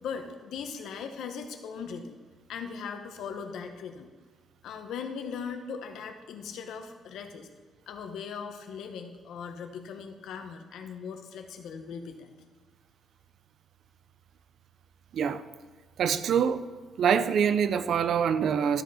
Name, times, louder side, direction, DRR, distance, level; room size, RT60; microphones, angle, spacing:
voice 1, 0.0-2.2 2.5-4.1 4.6-7.5 7.9-12.3, left 6 dB, 80° left, 1.2 m, -39 dB
voice 2, 15.1-15.4 16.0-16.7 17.0-18.8, right 7 dB, 55° right, 0.5 m, -25 dB
12.5 x 7.9 x 4.2 m
cardioid pair, 165°, 0 cm